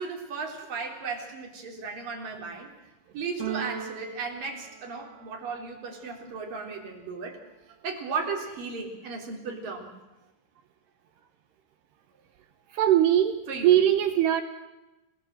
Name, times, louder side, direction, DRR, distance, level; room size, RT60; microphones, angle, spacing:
voice 1, 0.0-2.7 3.1-7.4 7.8-9.9 13.5-13.7, right 4 dB, 45° right, 1 dB, 5.2 m, -35 dB
Keyboard (musical), 3.4-5.5, right 9 dB, 90° right, 4.6 m, -38 dB
voice 2, 12.7-14.4, right 11 dB, 75° right, 9 dB, 2.8 m, -21 dB
30.0 x 18.0 x 7.9 m, 1.0 s
omnidirectional pair, 5.7 m